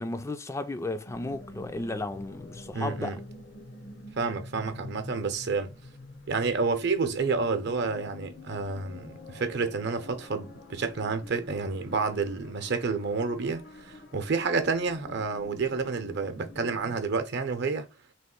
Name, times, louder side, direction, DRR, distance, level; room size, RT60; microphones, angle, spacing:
voice 1, 0.0-3.2, left 2 dB, 15° left, 0.3 m, -34 dB
sound 1, 1.1-17.0, left 2 dB, 80° left, 0.9 m, -47 dB
voice 2, 2.7-3.2 4.2-5.7 6.3-17.9, right 4 dB, 60° right, 0.7 m, -29 dB
3.1 x 3.1 x 4.4 m
head